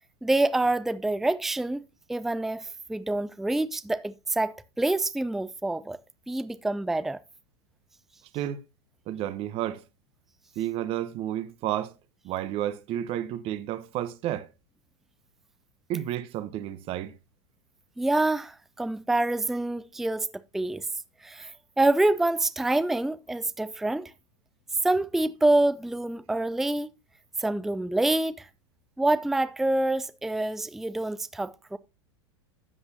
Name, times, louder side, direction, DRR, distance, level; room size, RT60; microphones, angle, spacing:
voice 1, 0.2-1.8 2.1-6.0 6.3-7.2 18.0-20.3 20.5-20.9 21.2-21.5 21.8-24.1 24.8-26.9 27.4-28.5 29.0-31.8, right 2 dB, ahead, 0.5 m, -26 dB
voice 2, 9.1-9.8 10.6-11.9 12.2-14.5 15.9-17.1, right 12 dB, 40° right, 1.0 m, -31 dB
12.5 x 7.9 x 2.8 m
hypercardioid pair, 105°, 15 cm